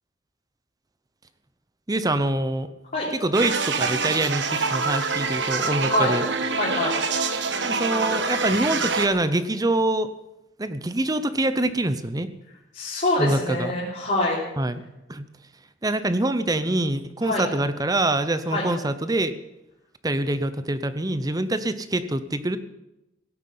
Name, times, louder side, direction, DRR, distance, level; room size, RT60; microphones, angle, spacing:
voice 1, 1.9-2.7 3.1-6.2 7.6-10.1 10.6-12.3 13.2-13.7 14.6-14.8 15.1-15.2 15.8-19.3 20.0-22.6, right 1 dB, 20° right, 12 dB, 0.7 m, -25 dB
sound 1, 3.3-9.1, right 4 dB, 65° right, 1.3 m, -25 dB
voice 2, 6.6-7.0 12.7-14.4 17.2-17.4 18.5-18.7, left 2 dB, 40° left, -7 dB, 3.7 m, -25 dB
17.0 x 8.0 x 9.5 m, 0.93 s
head